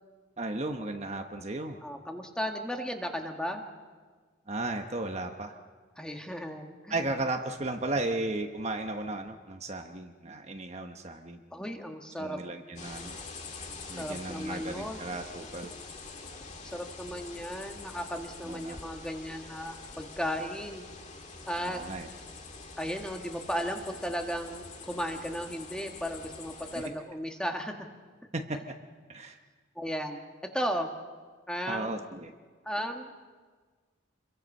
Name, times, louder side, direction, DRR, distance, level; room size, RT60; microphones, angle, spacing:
voice 1, 0.4-1.8 4.5-5.6 6.9-11.4 12.2-13.2 13.9-15.7 18.4-18.8 21.6-22.1 26.7-26.9 28.3-28.6 29.1-29.4 31.7-32.3, right 2 dB, 30° right, 4 dB, 1.1 m, -35 dB
voice 2, 1.8-3.6 6.0-7.0 11.5-12.4 13.9-15.0 16.6-20.8 21.5-21.8 22.8-27.8 29.7-30.2 30.5-30.9 31.5-31.9 32.6-33.1, equal, 5° left, 3 dB, 1.6 m, -35 dB
sound 1, 12.8-26.9, left 3 dB, 35° left, 2.1 m, -45 dB
27.5 x 23.0 x 5.5 m, 1.5 s
head